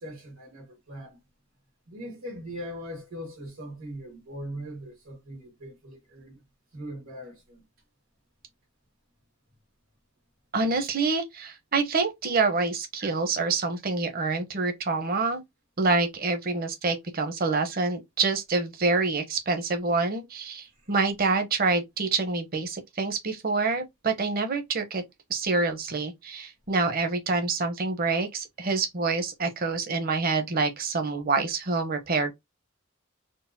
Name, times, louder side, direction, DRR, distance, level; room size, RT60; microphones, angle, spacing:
voice 1, 0.0-1.2 1.9-6.4 6.7-7.6, equal, 80° right, 1.6 m, -40 dB
voice 2, 10.5-15.4 15.8-25.0 25.3-32.3, right 3 dB, 45° right, 0.7 m, -27 dB
3.8 x 2.1 x 2.6 m
head